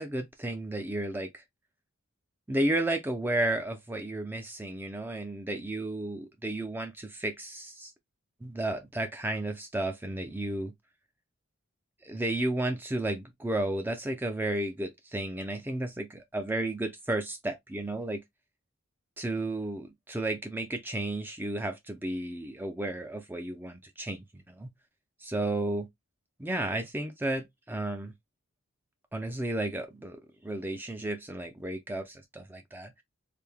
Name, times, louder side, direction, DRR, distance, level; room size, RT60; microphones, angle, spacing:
voice 1, 0.0-1.4 2.5-7.9 8.4-10.7 12.0-18.2 19.2-24.7 25.2-25.9 26.4-28.1 29.1-33.0, right 1 dB, 10° right, 0.4 m, -33 dB
3.4 x 2.6 x 3.4 m
head